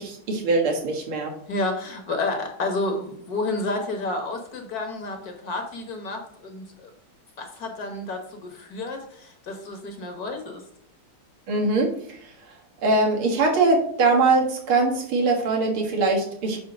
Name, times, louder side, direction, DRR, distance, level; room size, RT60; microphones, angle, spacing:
voice 1, 0.0-1.3 11.5-12.2 12.8-16.6, right 3 dB, 85° right, 0 dB, 2.4 m, -22 dB
voice 2, 1.5-6.9 7.4-10.6, left 2 dB, 50° left, 4 dB, 1.6 m, -30 dB
8.5 x 2.8 x 6.1 m, 0.64 s
omnidirectional pair, 2.3 m